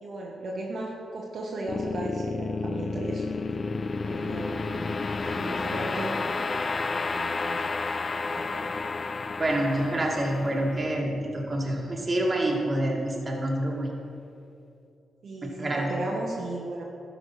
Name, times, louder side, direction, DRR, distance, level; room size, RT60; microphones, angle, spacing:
voice 1, 0.0-3.2 4.1-6.1 6.9-7.9 8.3-8.7 15.2-16.8, right 2 dB, 60° right, -2 dB, 1.1 m, -36 dB
sound 1, 1.7-12.9, left 4 dB, 45° left, 0.4 m, -31 dB
voice 2, 9.4-14.0 15.6-15.9, right 1 dB, 35° right, 0 dB, 2.0 m, -27 dB
12.0 x 4.7 x 6.0 m, 2.6 s
supercardioid pair, 45°, 0 cm